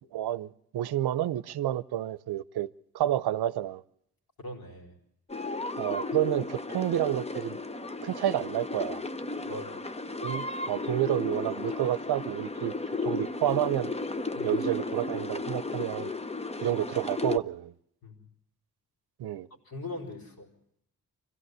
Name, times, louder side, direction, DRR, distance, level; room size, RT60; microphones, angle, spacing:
voice 1, 0.1-2.7 2.9-3.8 5.8-7.6 8.0-9.0 10.2-12.7 13.0-13.9 14.4-16.1 16.6-17.7 19.2-19.5, right 12 dB, 75° right, 0.7 m, -29 dB
voice 2, 4.4-4.9 9.4-9.8 14.3-14.5 18.0-18.2 19.7-20.5, left 2 dB, 60° left, 4.4 m, -40 dB
sound 1, 5.3-17.4, left 3 dB, 15° left, 0.7 m, -34 dB
24.5 x 16.5 x 8.0 m
cardioid pair, 60°, 39 cm